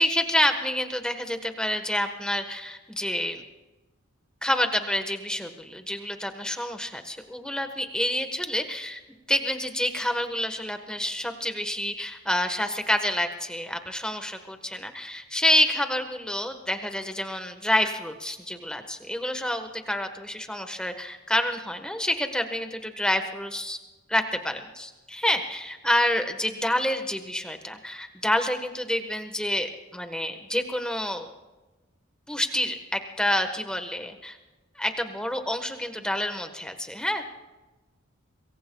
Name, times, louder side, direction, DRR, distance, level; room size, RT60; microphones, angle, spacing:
voice 1, 0.0-3.4 4.4-9.0 9.3-23.8 24.1-31.3 32.3-34.4 34.7-37.3, left 1 dB, 5° left, 6 dB, 1.3 m, -28 dB
26.0 x 22.5 x 2.3 m, 1.1 s
head